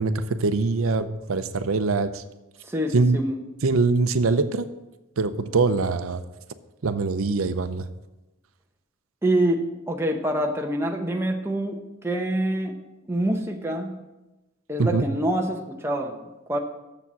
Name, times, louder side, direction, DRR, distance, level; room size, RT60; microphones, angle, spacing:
voice 1, 0.0-2.2 2.9-3.2 3.6-4.7 5.2-6.2 6.8-7.9 14.8-15.0, right 3 dB, 85° right, 11 dB, 0.6 m, -23 dB
voice 2, 2.6-3.4 9.2-12.8 13.1-14.0 14.7-16.6, right 1 dB, 10° right, 2 dB, 0.8 m, -26 dB
7.0 x 7.0 x 7.4 m, 1.0 s
head